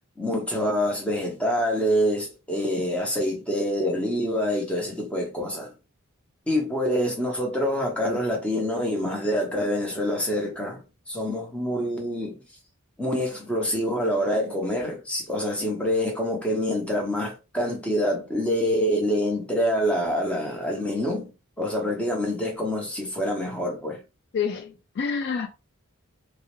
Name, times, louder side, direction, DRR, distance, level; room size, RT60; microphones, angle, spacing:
voice 1, 0.2-5.7 6.5-12.4 13.0-21.3 21.6-24.0, equal, 5° left, 0.7 m, -26 dB
voice 2, 24.3-25.5, left 6 dB, 50° left, 0.3 m, -28 dB
2.4 x 2.0 x 2.9 m
head